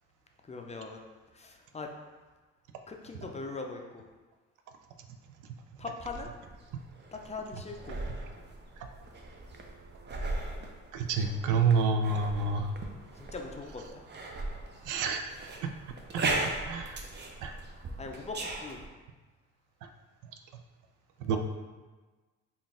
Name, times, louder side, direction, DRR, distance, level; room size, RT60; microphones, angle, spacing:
voice 1, 0.5-1.0 1.3-1.9 2.9-4.0 5.8-6.3 7.1-8.0 11.3-11.4 13.2-14.0 18.0-18.8 21.3-21.4, left 3 dB, 20° left, 2 dB, 0.4 m, -41 dB
sound 1, 6.0-18.9, right 2 dB, 35° right, 0.5 m, -38 dB
voice 2, 10.9-12.7 14.9-15.3 16.4-17.0 17.4-17.6 21.2-21.4, right 4 dB, 90° right, 6 dB, 0.5 m, -28 dB
3.9 x 2.5 x 3.6 m, 1.3 s
cardioid pair, 90°, 30 cm